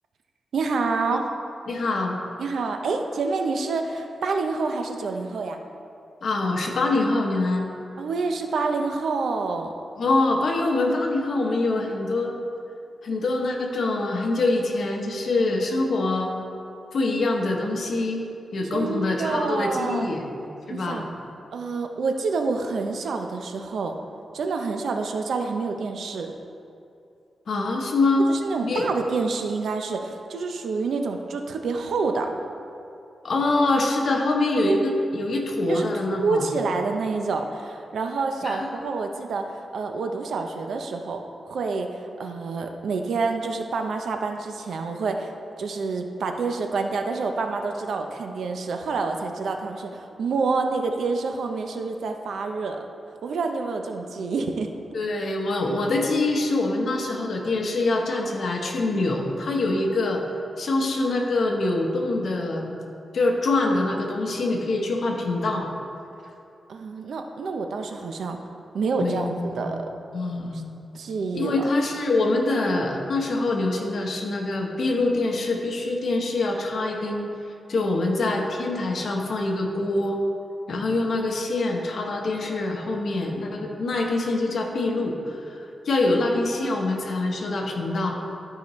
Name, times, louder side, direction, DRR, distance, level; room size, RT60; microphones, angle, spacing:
voice 1, 0.5-1.2 2.4-5.6 8.0-9.7 18.7-20.1 20.7-21.1 21.5-23.9 24.3-26.3 28.3-32.3 35.7-41.2 41.5-45.3 45.6-52.8 53.2-54.7 66.7-68.4 68.7-69.9 70.5-70.6 70.9-71.6 86.6-86.8, right 4 dB, 80° right, 4 dB, 0.6 m, -27 dB
voice 2, 1.7-2.2 6.2-7.7 10.0-12.4 13.0-16.3 16.9-18.2 18.5-20.2 20.7-21.1 27.5-28.3 28.6-28.9 33.2-36.5 38.4-38.7 54.9-60.2 60.6-62.8 63.1-65.7 69.0-69.8 70.1-70.7 71.3-77.3 77.7-80.2 80.7-88.2, left 2 dB, 65° left, 1 dB, 1.0 m, -24 dB
12.5 x 4.9 x 3.2 m, 2.7 s
wide cardioid pair, 115°, 0 cm